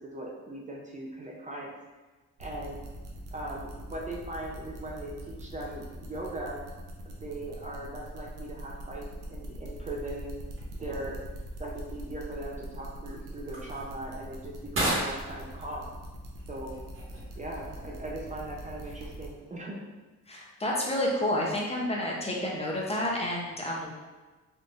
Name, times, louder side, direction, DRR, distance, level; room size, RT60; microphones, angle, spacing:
voice 1, 0.0-1.7 2.4-2.8 3.3-6.6 7.2-10.4 10.7-11.2 11.6-15.9 16.5-16.8 17.4-19.8, right 1 dB, 25° right, -3 dB, 0.5 m, -39 dB
sound 1, 2.4-19.3, equal, 75° right, 0.7 m, -44 dB
sound 2, 10.4-19.6, right 1 dB, 45° right, 1.2 m, -39 dB
voice 2, 20.3-23.9, left 1 dB, 20° left, -3 dB, 0.7 m, -30 dB
3.7 x 2.6 x 2.5 m, 1.3 s
cardioid pair, 90°, 30 cm